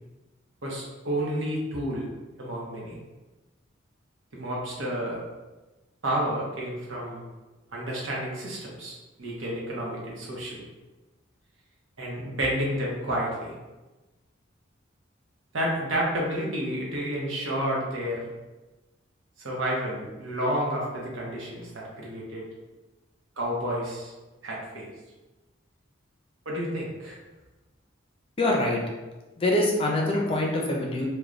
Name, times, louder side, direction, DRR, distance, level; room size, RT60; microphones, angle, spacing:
voice 1, 0.6-2.1 2.4-3.0 4.3-5.2 6.0-7.2 7.7-10.6 12.0-13.5 15.5-18.2 19.4-22.4 23.4-24.1 24.4-24.9 26.5-27.2, equal, 85° right, -4 dB, 0.8 m, -30 dB
voice 2, 28.4-28.8 29.4-31.1, left 1 dB, 30° left, -1 dB, 0.4 m, -24 dB
3.1 x 2.1 x 2.4 m, 1.1 s
head